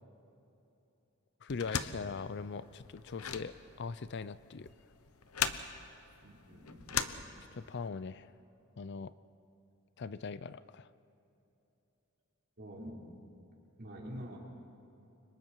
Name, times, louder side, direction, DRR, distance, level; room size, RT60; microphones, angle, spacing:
voice 1, 1.4-4.7 7.5-8.3 8.8-9.1 10.0-10.9, left 5 dB, 50° left, 15 dB, 0.5 m, -41 dB
sound 1, 1.5-7.8, left 7 dB, 80° left, 1.0 m, -39 dB
voice 2, 6.2-7.2 12.6-13.0 13.8-14.4, equal, 45° right, -4 dB, 5.0 m, -46 dB
30.0 x 25.5 x 4.7 m, 2.9 s
head